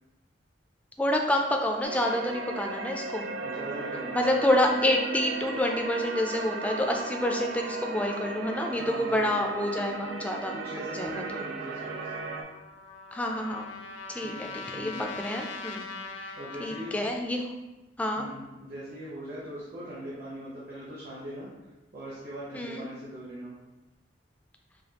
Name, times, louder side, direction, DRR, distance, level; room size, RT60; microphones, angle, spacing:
voice 1, 1.0-3.3 4.1-10.5 10.9-11.4 13.1-13.7 14.1-15.9 16.2-16.3 16.6-17.5 18.0-18.2 22.5-22.8, left 1 dB, 10° left, 2 dB, 0.3 m, -28 dB
sound 1, 1.8-12.4, right 4 dB, 80° right, 0.4 m, -36 dB
voice 2, 3.4-4.2 8.7-9.3 10.5-12.1 14.2-15.1 16.4-16.9 18.2-21.5 21.9-23.5, equal, 50° right, -8 dB, 0.9 m, -40 dB
Trumpet, 12.3-17.0, left 3 dB, 80° left, 0.4 m, -41 dB
4.9 x 2.3 x 2.8 m, 1.1 s
head